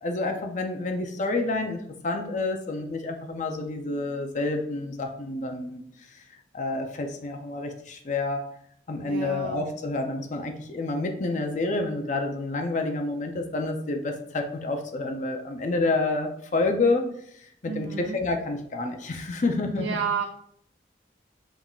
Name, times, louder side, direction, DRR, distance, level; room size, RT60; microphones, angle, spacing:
voice 1, 0.0-5.8 6.5-8.5 8.9-17.1 17.6-19.9, left 2 dB, 45° left, 4 dB, 0.5 m, -28 dB
voice 2, 9.0-9.7 17.6-18.2 19.8-20.3, right 6 dB, 80° right, 5 dB, 0.4 m, -31 dB
5.4 x 3.5 x 2.4 m, 0.68 s
head